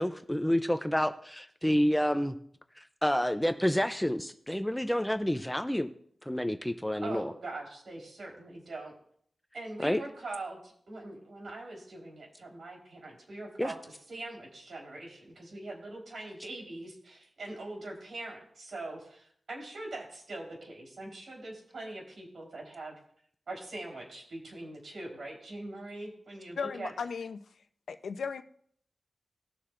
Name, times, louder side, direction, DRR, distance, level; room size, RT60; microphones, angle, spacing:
voice 1, 0.0-2.4 2.8-5.9 6.3-7.3 9.8-10.0 13.6-13.7, equal, 5° left, 8 dB, 0.6 m, -29 dB
voice 2, 7.0-8.9 9.5-22.9 23.5-26.9, right 2 dB, 65° right, -1 dB, 4.1 m, -42 dB
voice 3, 26.5-27.4 27.9-28.4, left 5 dB, 85° left, 9 dB, 0.7 m, -36 dB
20.0 x 7.0 x 2.6 m, 0.63 s
wide cardioid pair, 115°, 0 cm